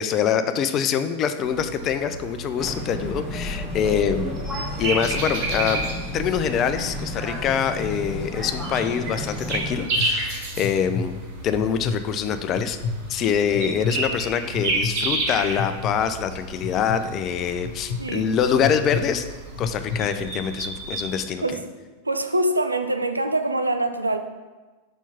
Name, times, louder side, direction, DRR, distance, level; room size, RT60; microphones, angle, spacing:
voice 1, 0.0-4.4 4.8-5.9 6.1-12.8 13.1-19.2 19.6-21.4, left 8 dB, 35° left, 10 dB, 0.5 m, -25 dB
sound 1, 1.4-21.2, right 2 dB, 50° right, 1.5 m, -32 dB
sound 2, 2.6-9.8, left 1 dB, ahead, 1.2 m, -32 dB
sound 3, 9.0-9.1 9.6-10.1 10.6-11.1 11.6-12.0 12.5-13.0 13.5-14.0 14.5-14.9 15.6-16.0 16.6-17.0 17.6-18.0 18.6-19.0 19.6-20.0, left 5 dB, 65° left, 1.3 m, -28 dB
voice 2, 18.0-18.3 21.4-21.6 22.0-24.2, right 1 dB, 80° right, 7 dB, 0.5 m, -24 dB
5.5 x 4.4 x 5.8 m, 1.3 s
figure-of-eight pair, 90°, 0 cm